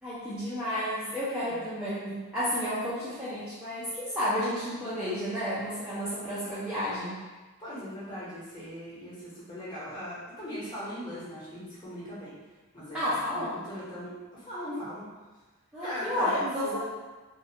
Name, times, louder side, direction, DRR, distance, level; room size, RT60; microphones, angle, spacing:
voice 1, 0.0-7.2 12.9-13.5 15.7-16.8, equal, 5° right, -13 dB, 0.4 m, -31 dB
voice 2, 7.6-12.3 12.7-15.0 15.8-16.8, equal, 20° left, -10 dB, 0.8 m, -39 dB
2.4 x 2.2 x 2.7 m, 1.3 s
head